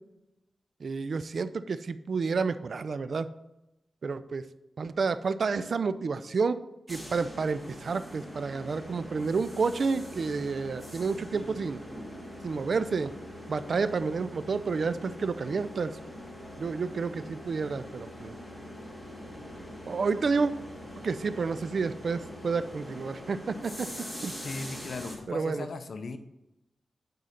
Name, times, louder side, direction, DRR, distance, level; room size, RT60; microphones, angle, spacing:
voice 1, 0.8-3.3 4.0-4.4 4.8-6.6 6.9-11.8 12.4-13.1 13.5-15.9 16.6-18.3 19.9-20.5 21.0-23.9 24.2-24.4 25.3-25.7, right 4 dB, 60° right, 13 dB, 0.5 m, -30 dB
sound 1, 6.9-25.2, left 1 dB, 5° left, 2.3 m, -43 dB
voice 2, 24.4-26.2, left 3 dB, 65° left, 8 dB, 0.7 m, -38 dB
9.3 x 3.9 x 5.8 m, 0.92 s
wide cardioid pair, 85°, 0 cm